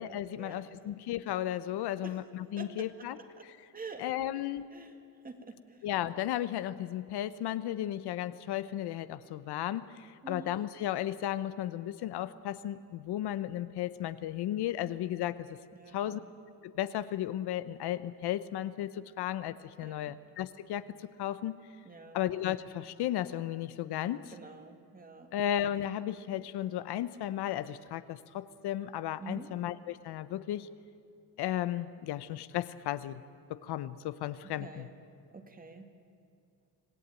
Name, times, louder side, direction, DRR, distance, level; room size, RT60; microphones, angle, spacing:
voice 1, 0.0-3.2 3.5-3.6 4.0-4.6 5.8-15.6 15.9-16.2 16.6-21.5 22.1-24.3 25.3-30.7 31.4-33.2 33.5-34.9, left 12 dB, 70° left, 14 dB, 0.9 m, -34 dB
voice 2, 2.6-3.1 3.4-3.5 3.7-4.0 4.7-5.0 5.2-5.9 10.2-10.6 15.7-16.2 19.8-20.2 21.9-22.2 24.0-25.3 29.2-29.5 34.4-34.9 35.3-35.9, right 4 dB, 20° right, 6 dB, 1.9 m, -47 dB
26.0 x 17.5 x 9.0 m, 2.4 s
cardioid pair, 135°, 41 cm